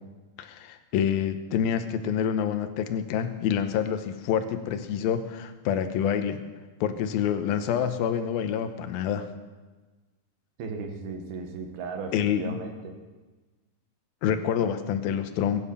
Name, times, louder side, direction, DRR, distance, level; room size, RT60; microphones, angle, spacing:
voice 1, 0.4-6.4 6.8-9.3 12.1-12.6 14.2-15.6, left 8 dB, 80° left, 9 dB, 2.8 m, -27 dB
voice 2, 10.6-13.0, right 4 dB, 90° right, 4 dB, 3.6 m, -36 dB
22.5 x 9.7 x 5.6 m, 1.3 s
omnidirectional pair, 4.2 m